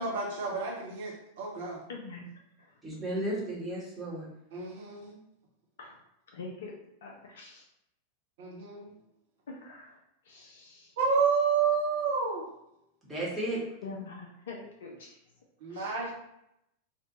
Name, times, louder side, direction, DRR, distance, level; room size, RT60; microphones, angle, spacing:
voice 1, 0.0-1.9 4.5-5.1 8.4-8.9 11.0-12.5 15.6-16.1, right 5 dB, 55° right, -3 dB, 0.8 m, -30 dB
voice 2, 1.9-2.2 2.6-2.7 5.8-6.0 6.3-6.7 7.0-7.6 9.5-10.0 10.3-10.9 13.8-15.2 15.7-15.9, left 4 dB, 60° left, 0 dB, 0.4 m, -44 dB
voice 3, 2.8-4.3 13.0-13.6, right 1 dB, 10° right, -6 dB, 1.0 m, -34 dB
2.5 x 2.1 x 2.8 m, 0.80 s
figure-of-eight pair, 90°, 0 cm